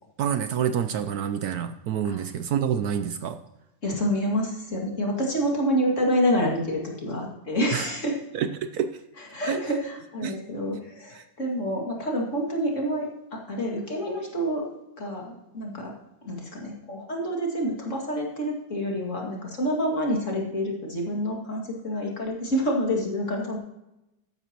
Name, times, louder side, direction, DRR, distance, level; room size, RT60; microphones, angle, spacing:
voice 1, 0.2-3.4 7.7-7.9 8.3-8.9 9.4-9.6 10.2-10.4 11.1-11.2, right 8 dB, 70° right, 9 dB, 1.1 m, -27 dB
voice 2, 3.8-8.1 9.3-14.7 15.0-15.9 16.2-23.6, equal, 45° left, -1 dB, 2.5 m, -28 dB
13.5 x 10.5 x 3.0 m, 0.92 s
omnidirectional pair, 1.8 m